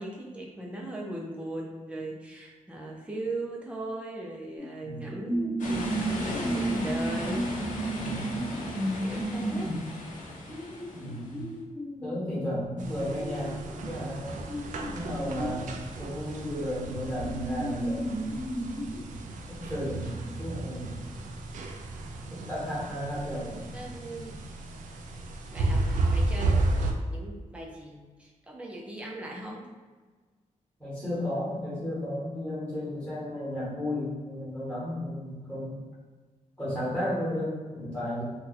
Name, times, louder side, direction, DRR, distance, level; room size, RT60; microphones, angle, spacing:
voice 1, 0.0-7.5 7.8-8.0 8.9-9.7 23.7-24.4 25.5-29.7, right 1 dB, 10° right, -2 dB, 0.5 m, -38 dB
sound 1, 4.6-4.7 5.2-12.2 12.8-15.6 16.6-16.7 17.0-19.0, right 1 dB, 35° right, 0.9 m, -33 dB
sound 2, 5.6-11.5, left 2 dB, 70° left, 0.7 m, -37 dB
voice 2, 7.9-8.4 10.9-11.5 12.0-14.4 14.8-18.4 19.2-21.0 22.2-23.6 30.8-35.8 36.6-38.2, left 1 dB, 10° left, -8 dB, 1.2 m, -34 dB
sound 3, 12.8-26.9, right 2 dB, 75° right, 0.4 m, -33 dB
2.7 x 2.3 x 4.0 m, 1.4 s
wide cardioid pair, 180°, 14 cm